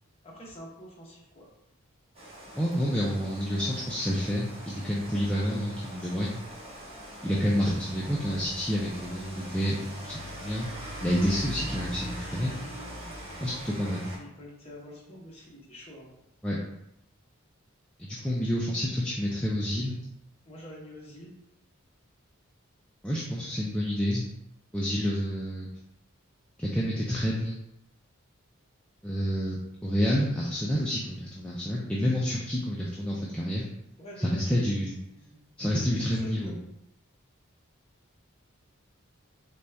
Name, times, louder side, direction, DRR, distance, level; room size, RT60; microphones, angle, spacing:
voice 1, 0.2-1.5 13.8-16.1 20.4-21.3 34.0-35.4 35.9-36.6, equal, 30° left, -4 dB, 0.9 m, -46 dB
Rain, 2.1-14.2, equal, 25° right, 0.9 m, -42 dB
voice 2, 2.6-6.4 7.2-10.7 11.0-12.5 13.4-14.1 16.4-16.6 18.0-20.0 23.0-24.3 24.7-25.7 26.6-27.6 29.0-29.6 29.8-33.6 34.2-34.9 35.6-36.5, equal, 5° left, -6 dB, 0.4 m, -29 dB
4.0 x 2.3 x 3.3 m, 0.83 s
head